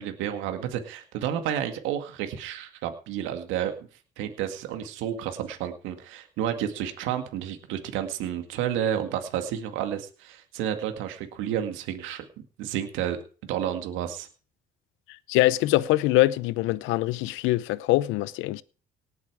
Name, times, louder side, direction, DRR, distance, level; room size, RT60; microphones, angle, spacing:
voice 1, 0.0-3.7 4.2-12.2 12.6-13.2 13.5-14.3, right 10 dB, 85° right, 2.1 m, -31 dB
voice 2, 15.3-18.6, left 17 dB, 85° left, 0.7 m, -23 dB
18.5 x 8.4 x 4.9 m
supercardioid pair, 80°, 20 cm